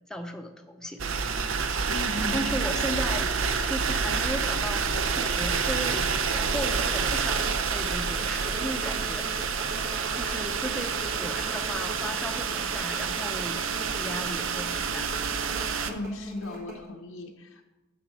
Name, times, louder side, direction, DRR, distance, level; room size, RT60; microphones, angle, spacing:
voice 1, 0.1-1.1 2.2-3.3 3.7-9.5 10.1-15.1, equal, 5° left, 3 dB, 0.6 m, -36 dB
sound 1, 1.0-15.9, right 5 dB, 80° right, 0.6 m, -28 dB
voice 2, 1.9-2.5 15.9-17.6, left 2 dB, 85° left, 2 dB, 0.7 m, -36 dB
sound 2, 6.3-16.9, right 1 dB, 55° right, 2.9 m, -42 dB
7.2 x 6.2 x 7.3 m, 1.1 s
head